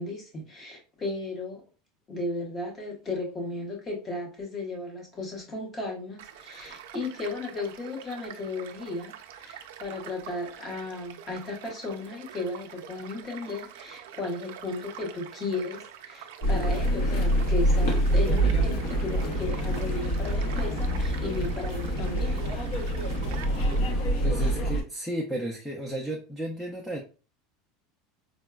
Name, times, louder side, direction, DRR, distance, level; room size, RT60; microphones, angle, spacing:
voice 1, 0.0-1.6 2.1-22.4, left 2 dB, 20° left, 1 dB, 0.8 m, -35 dB
Child speech kid speaking / Stream / Car passing by, 6.2-23.8, right 9 dB, 80° right, 0.4 m, -46 dB
sound 1, 16.4-24.8, right 1 dB, 50° left, 0.7 m, -26 dB
voice 2, 24.2-27.0, right 1 dB, 5° left, 0 dB, 0.4 m, -33 dB
4.6 x 2.1 x 2.2 m, 0.34 s
supercardioid pair, 180°, 0 cm